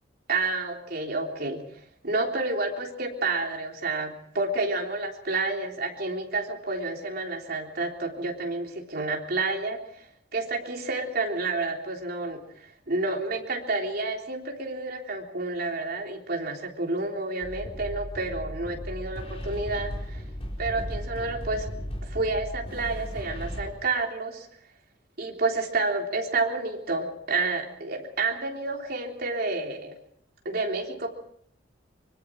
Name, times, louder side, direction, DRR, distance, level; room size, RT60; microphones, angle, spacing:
voice 1, 0.3-1.6 2.0-9.8 10.3-20.2 20.6-21.7 22.0-24.5 25.2-30.0 30.5-31.1, right 3 dB, 55° right, 1 dB, 3.7 m, -29 dB
sound 1, 17.4-23.7, equal, 35° left, 4.2 m, -36 dB
24.5 x 23.0 x 4.7 m, 0.63 s
head